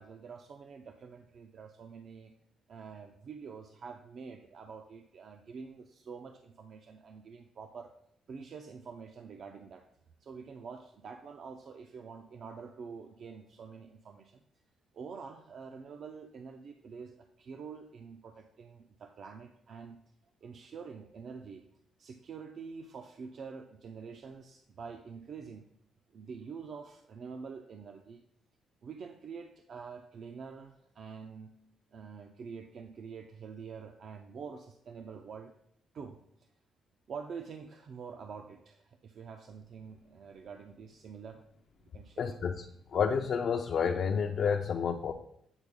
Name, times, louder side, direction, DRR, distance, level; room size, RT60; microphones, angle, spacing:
voice 1, 0.0-2.3 2.7-7.9 8.3-9.8 10.2-14.4 14.9-20.0 20.4-21.6 22.0-25.6 26.1-28.2 28.8-31.5 31.9-35.5 35.9-36.5 37.1-41.4 41.9-42.4, right 5 dB, 60° right, 5 dB, 0.4 m, -46 dB
voice 2, 42.2-42.6 42.9-45.1, left 6 dB, 55° left, 4 dB, 0.4 m, -30 dB
8.0 x 4.0 x 3.6 m, 0.72 s
cardioid pair, 90°, 0 cm